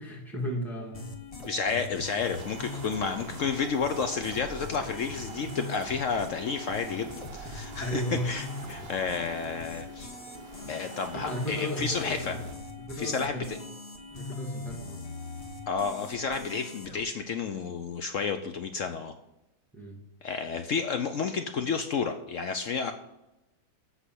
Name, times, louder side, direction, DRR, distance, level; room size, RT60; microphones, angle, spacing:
voice 1, 0.0-1.8 4.9-5.0 7.8-8.3 11.1-12.4 12.8-13.7 14.1-15.0 19.7-20.0, equal, ahead, -1 dB, 1.8 m, -35 dB
sound 1, 0.9-17.0, left 3 dB, 25° left, 0.8 m, -41 dB
voice 2, 1.5-10.1 10.7-12.4 13.0-13.6 15.7-19.1 20.2-22.9, left 5 dB, 80° left, 7 dB, 0.7 m, -31 dB
sound 2, 2.2-12.5, right 5 dB, 65° right, 0.6 m, -46 dB
8.1 x 6.0 x 7.7 m, 0.94 s
omnidirectional pair, 2.1 m